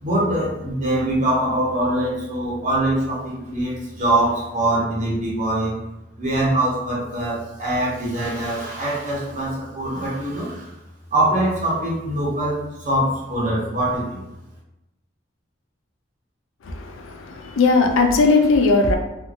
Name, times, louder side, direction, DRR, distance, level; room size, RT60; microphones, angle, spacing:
voice 1, 0.0-5.7 6.2-10.7 11.1-14.2, right 1 dB, 40° right, -6 dB, 0.9 m, -23 dB
voice 2, 16.7-19.0, left 3 dB, 75° left, 3 dB, 0.4 m, -18 dB
2.6 x 2.6 x 2.5 m, 0.92 s
head